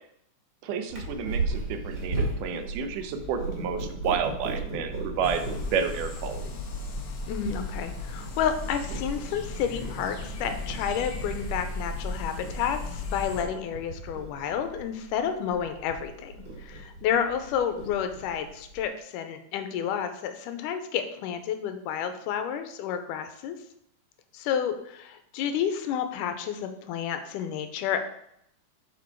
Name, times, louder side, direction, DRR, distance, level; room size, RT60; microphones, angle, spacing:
voice 1, 0.6-5.4 5.7-6.4, right 6 dB, 80° right, 7 dB, 2.3 m, -30 dB
Purr, 0.9-18.8, right 3 dB, 35° right, 2.1 m, -37 dB
sound 1, 5.2-13.4, left 2 dB, 60° left, 1.4 m, -35 dB
voice 2, 7.3-16.3 16.6-23.6 24.3-28.0, left 8 dB, 90° left, 8 dB, 2.3 m, -30 dB
7.4 x 4.7 x 4.5 m, 0.74 s
omnidirectional pair, 3.6 m